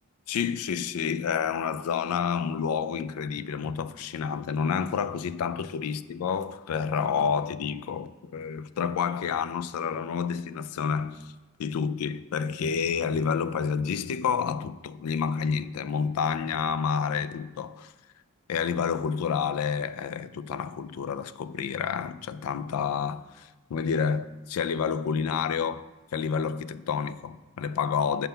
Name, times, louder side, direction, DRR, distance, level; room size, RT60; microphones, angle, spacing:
voice 1, 0.3-11.3 11.6-17.9 18.5-25.9 26.1-28.3, left 6 dB, 85° left, 0.3 m, -29 dB
5.6 x 3.7 x 5.6 m
head